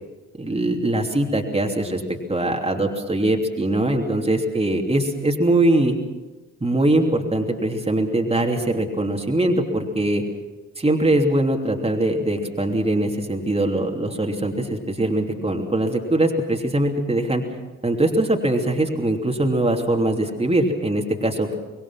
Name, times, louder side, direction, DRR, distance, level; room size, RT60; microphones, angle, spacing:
voice 1, 0.4-5.9 6.6-10.2 10.8-17.4 17.8-21.5, right 1 dB, 15° right, 2 dB, 3.1 m, -22 dB
24.5 x 21.0 x 6.0 m, 1.2 s
figure-of-eight pair, 40°, 41 cm